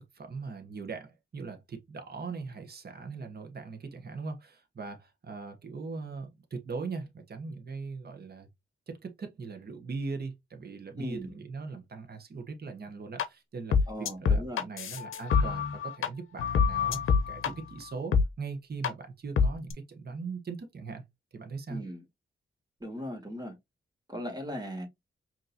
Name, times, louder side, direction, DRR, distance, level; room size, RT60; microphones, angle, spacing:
voice 1, 0.1-8.5 8.9-21.0 21.3-21.8, right 4 dB, 50° right, 1.1 m, -40 dB
voice 2, 11.0-11.3 13.9-14.7 21.7-22.0 22.8-23.6 24.1-24.9, equal, 20° right, 2.0 m, -38 dB
sound 1, 13.2-13.3 13.7-16.1 16.4-17.5 18.1-18.2 18.8-18.9 19.4-19.7, left 5 dB, 80° left, 0.6 m, -25 dB
5.3 x 2.9 x 2.6 m
cardioid pair, 65°, 21 cm